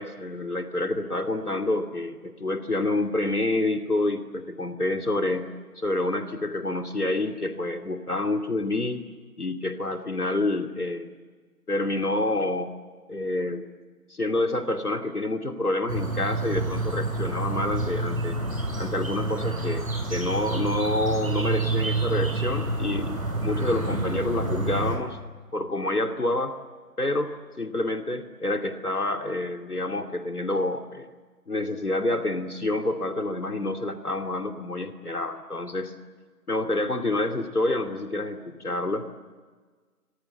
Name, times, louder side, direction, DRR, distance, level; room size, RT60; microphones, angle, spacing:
voice 1, 0.0-5.5 5.8-9.0 9.4-11.1 11.7-12.7 13.1-13.7 14.1-18.4 18.8-19.8 20.1-25.2 25.5-26.5 27.0-31.1 31.5-35.9 36.5-39.1, left 2 dB, 75° left, 5 dB, 2.6 m, -28 dB
sound 1, 15.9-25.0, right 2 dB, 60° right, 7.7 m, -28 dB
29.5 x 25.0 x 8.0 m, 1.4 s
figure-of-eight pair, 160°, 46 cm